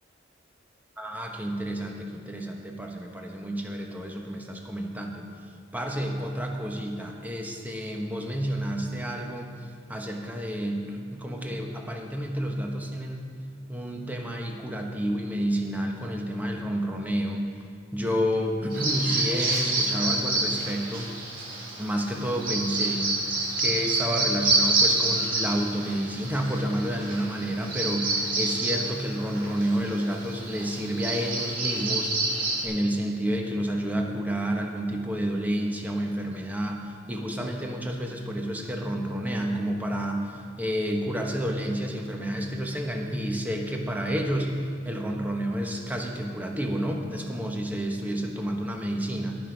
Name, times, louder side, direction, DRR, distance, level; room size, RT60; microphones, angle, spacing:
voice 1, 1.0-5.2 5.7-9.5 9.9-13.3 13.7-17.5 17.9-21.1 21.8-23.3 23.6-44.5 44.8-49.4, equal, 10° right, 1 dB, 1.1 m, -30 dB
Bird vocalization bird call bird song, 18.7-32.6, right 2 dB, 50° right, 2.9 m, -28 dB
18.5 x 6.1 x 5.1 m, 2.4 s
head